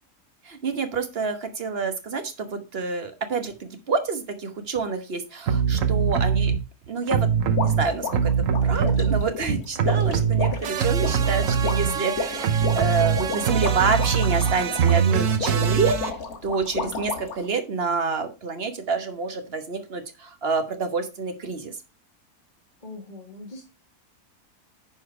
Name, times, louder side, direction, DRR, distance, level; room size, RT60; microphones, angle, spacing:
voice 1, 0.4-6.5 6.9-7.3 7.6-8.3 8.6-16.2 16.4-21.7, right 4 dB, 45° right, 8 dB, 1.3 m, -28 dB
sound 1, 5.5-6.6 7.1-9.5 9.8-16.1, right 7 dB, 60° right, 1.2 m, -22 dB
sound 2, 7.6-17.5, left 4 dB, 75° left, 1.9 m, -32 dB
voice 2, 22.8-23.6, left 2 dB, 30° left, -2 dB, 2.0 m, -41 dB
9.9 x 4.5 x 4.8 m, 0.29 s
omnidirectional pair, 1.6 m